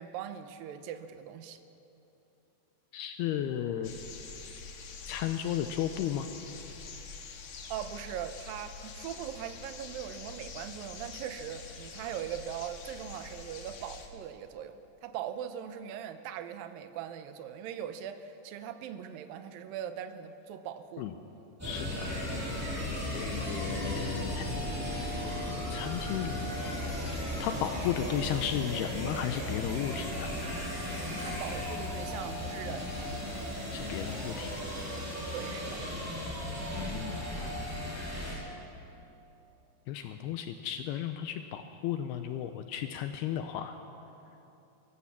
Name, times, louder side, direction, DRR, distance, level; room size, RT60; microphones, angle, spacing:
voice 1, 0.0-1.6 7.7-21.1 31.2-32.9 35.3-35.8, right 9 dB, 75° right, 9 dB, 2.2 m, -40 dB
voice 2, 2.9-4.0 5.1-6.3 21.0-21.1 21.6-22.1 23.1-24.6 25.7-30.4 33.7-34.6 36.7-37.4 39.9-43.7, left 10 dB, 80° left, 8 dB, 2.5 m, -34 dB
sound 1, 3.8-14.1, left 4 dB, 55° left, 2.1 m, -46 dB
sound 2, 21.6-38.3, left 1 dB, 5° right, 5.9 m, -35 dB
24.5 x 14.5 x 7.3 m, 3.0 s
omnidirectional pair, 4.9 m